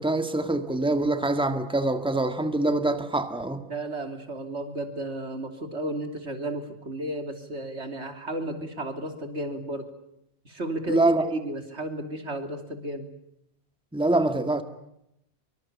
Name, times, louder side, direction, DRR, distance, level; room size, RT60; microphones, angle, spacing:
voice 1, 0.0-3.6 10.9-11.2 13.9-14.6, right 2 dB, 5° right, 8 dB, 1.8 m, -24 dB
voice 2, 3.6-9.9 10.5-13.1, right 1 dB, 85° right, 6 dB, 3.4 m, -33 dB
25.0 x 24.0 x 8.5 m, 0.80 s
omnidirectional pair, 1.1 m